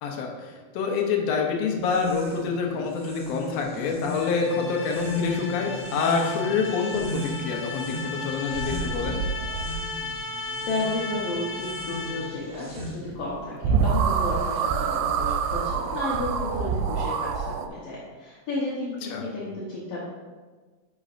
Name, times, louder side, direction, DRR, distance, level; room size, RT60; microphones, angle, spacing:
voice 1, 0.0-9.2 19.1-19.2, left 5 dB, 85° left, 1 dB, 1.4 m, -27 dB
sound 1, 1.7-13.3, left 1 dB, 60° right, 0.7 m, -37 dB
sound 2, 4.1-12.5, left 3 dB, 35° right, 1.9 m, -35 dB
sound 3, 8.5-10.1 13.3-13.4 13.6-17.7, right 6 dB, 85° right, 2.3 m, -26 dB
voice 2, 10.7-20.0, left 2 dB, 65° left, -7 dB, 1.6 m, -32 dB
10.0 x 5.3 x 2.5 m, 1.4 s
omnidirectional pair, 4.0 m